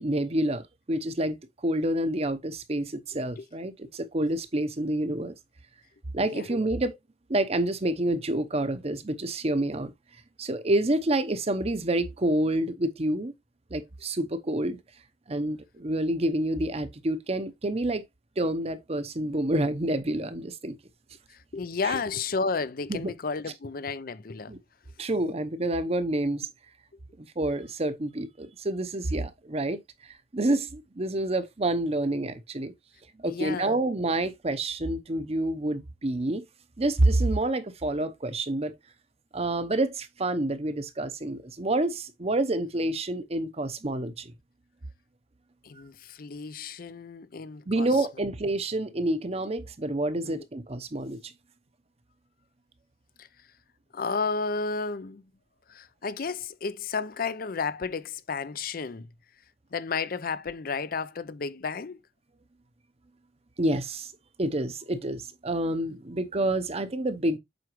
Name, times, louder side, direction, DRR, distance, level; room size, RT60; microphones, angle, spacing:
voice 1, 0.0-1.4 1.6-5.3 6.1-7.0 7.3-9.9 10.4-13.3 13.7-14.8 15.3-18.0 18.4-20.8 21.8-21.9 22.9-23.1 24.5-24.6 25.0-26.5 27.2-29.8 30.3-32.7 33.2-36.4 36.8-38.7 39.3-44.3 47.7-51.3 63.6-64.1 64.4-67.4, right 1 dB, 35° right, 0.8 m, -28 dB
voice 2, 6.2-6.6 21.3-24.5 33.3-33.8 45.6-48.1 50.2-50.4 53.2-53.3 53.9-55.2 55.7-59.1 59.7-62.0, left 4 dB, 55° left, 0.6 m, -32 dB
7.8 x 4.9 x 3.1 m
head